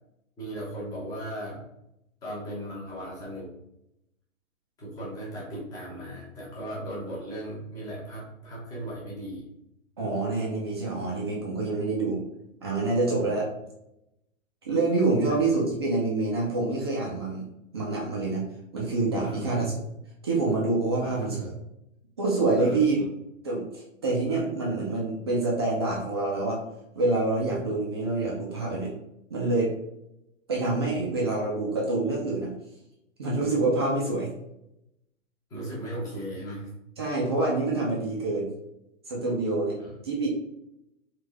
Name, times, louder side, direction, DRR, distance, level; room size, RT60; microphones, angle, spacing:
voice 1, 0.4-1.6 2.2-3.5 4.8-9.4 13.2-13.4 15.2-15.4 19.2-19.7 21.0-21.6 22.6-23.1 35.5-36.7 39.7-40.0, right 1 dB, 10° left, -6 dB, 0.8 m, -37 dB
voice 2, 10.0-12.2 12.6-13.5 14.6-17.4 17.7-18.4 18.7-19.8 20.2-21.5 22.2-23.0 23.4-26.6 26.9-28.9 29.3-29.7 30.5-32.5 33.2-34.3 37.0-38.5 39.1-39.8 40.0-40.3, right 3 dB, 20° right, -3 dB, 0.4 m, -26 dB
3.5 x 3.2 x 3.4 m, 0.84 s
hypercardioid pair, 160°, 40 cm